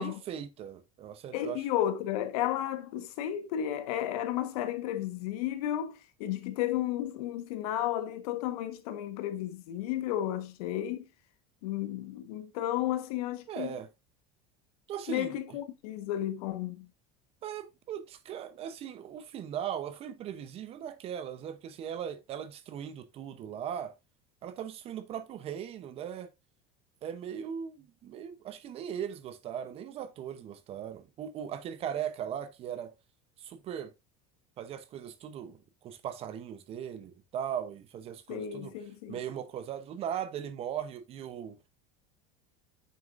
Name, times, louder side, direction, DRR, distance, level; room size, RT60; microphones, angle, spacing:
voice 1, 0.0-1.6 13.5-13.9 14.9-15.4 17.4-23.9 24.4-26.3 27.0-32.9 33.4-33.9 34.6-38.7 39.1-41.6, right 9 dB, 30° right, 0.8 m, -38 dB
voice 2, 1.3-11.1 11.6-13.8 15.1-16.9 38.3-39.2, left 12 dB, 80° left, 1.4 m, -33 dB
9.0 x 6.7 x 2.6 m
cardioid pair, 170°, 19 cm